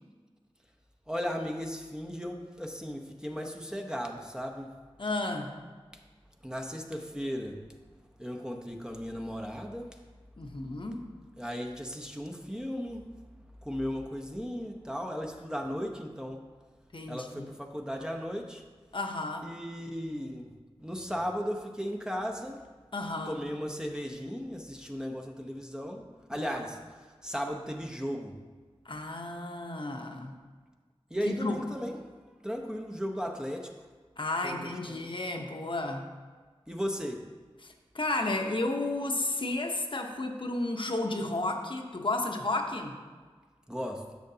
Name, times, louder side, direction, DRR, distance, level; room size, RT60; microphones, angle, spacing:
voice 1, 1.1-4.7 6.4-7.6 8.2-10.0 11.4-13.0 13.6-16.4 17.1-18.6 19.4-20.5 20.8-22.6 23.3-26.0 26.3-28.4 31.1-32.1 32.4-33.7 34.4-35.1 36.7-37.2 43.7-44.0, equal, 5° right, 2 dB, 0.8 m, -36 dB
voice 2, 5.0-5.5 10.4-11.1 16.9-17.5 18.9-19.5 22.9-23.4 26.3-26.6 28.8-30.3 31.2-31.6 34.2-36.0 37.6-42.9, left 2 dB, 55° left, 2 dB, 0.9 m, -32 dB
10.5 x 6.5 x 2.8 m, 1.4 s
wide cardioid pair, 45°, 10 cm